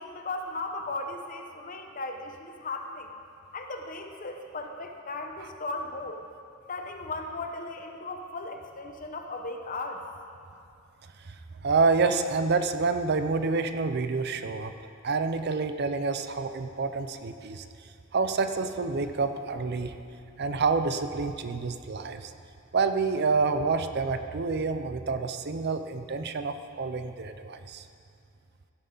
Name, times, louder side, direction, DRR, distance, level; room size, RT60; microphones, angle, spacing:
voice 1, 0.0-3.1 3.5-6.2 6.7-10.0, left 2 dB, 40° left, 4 dB, 1.0 m, -36 dB
voice 2, 11.2-14.7 15.0-19.9 20.4-22.3 22.7-27.9, right 4 dB, 50° right, 9 dB, 0.6 m, -28 dB
16.5 x 11.5 x 3.9 m, 2.5 s
head